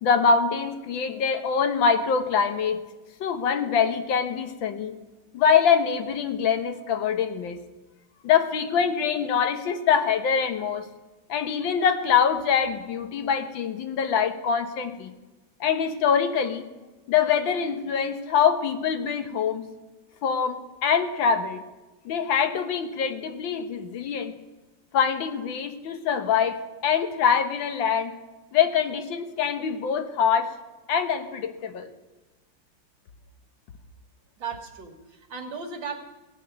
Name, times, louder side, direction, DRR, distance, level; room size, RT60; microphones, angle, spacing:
voice 1, 0.0-2.8 3.2-4.9 5.3-7.6 8.2-10.9 11.3-15.1 15.6-16.7 17.1-19.6 20.2-21.6 22.0-24.3 24.9-28.1 28.5-30.5 30.9-31.9, left 7 dB, 85° left, 8 dB, 1.8 m, -24 dB
voice 2, 34.4-36.1, right 5 dB, 85° right, 2 dB, 2.4 m, -36 dB
17.0 x 8.8 x 6.6 m, 1.2 s
omnidirectional pair, 2.0 m